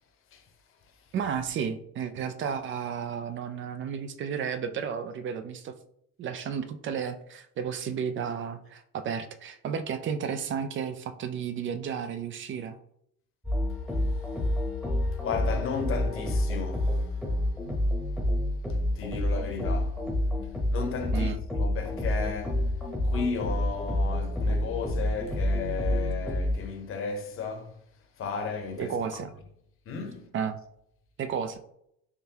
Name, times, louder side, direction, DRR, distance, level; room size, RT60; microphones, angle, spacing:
voice 1, 1.1-5.7 6.2-12.8 21.1-21.4 28.8-29.3 30.3-30.6 31.2-31.6, right 7 dB, 45° right, 0.4 m, -32 dB
sound 1, 13.4-26.6, left 1 dB, ahead, 0.9 m, -28 dB
voice 2, 15.2-17.3 18.9-20.0 20.7-22.6 23.0-27.8 28.2-29.0 29.9-30.3, left 5 dB, 45° left, 0.8 m, -34 dB
3.7 x 3.4 x 2.8 m
cardioid pair, 135°, 30 cm